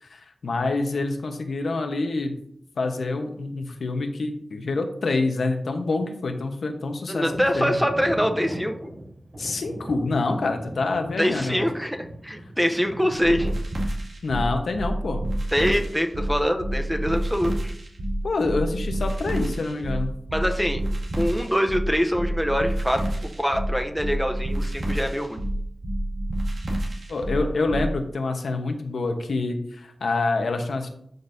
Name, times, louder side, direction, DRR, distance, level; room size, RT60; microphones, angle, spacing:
voice 1, 0.0-2.3 2.8-7.3 7.5-7.8 9.4-11.6 14.2-15.2 18.2-20.2 27.1-30.9, left 3 dB, 85° left, 5 dB, 1.0 m, -26 dB
voice 2, 7.1-8.8 11.2-12.0 12.2-13.5 15.5-17.7 20.3-20.8 21.2-23.0 23.4-25.4, equal, ahead, 5 dB, 0.7 m, -24 dB
sound 1, 7.3-13.5, right 1 dB, 55° right, 3.6 m, -38 dB
sound 2, 13.2-27.9, right 1 dB, 75° right, 2.2 m, -28 dB
12.0 x 5.3 x 2.7 m, 0.69 s
wide cardioid pair, 115°, 0 cm